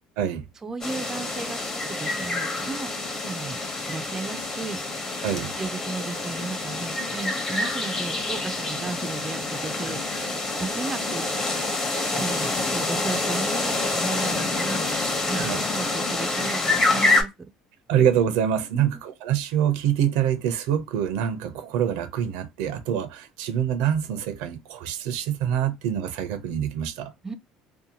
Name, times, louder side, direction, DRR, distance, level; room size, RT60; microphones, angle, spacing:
voice 1, 0.6-2.9 3.2-3.6 3.9-4.8 5.3-10.3 10.6-11.4 12.2-17.3 18.7-19.0 27.2-27.3, right 4 dB, 20° right, 0.3 m, -35 dB
sound 1, 0.8-17.2, left 2 dB, 25° left, 0.8 m, -27 dB
voice 2, 17.9-27.1, right 9 dB, 85° right, 0.5 m, -25 dB
2.6 x 2.2 x 2.7 m
cardioid pair, 115°, 2 cm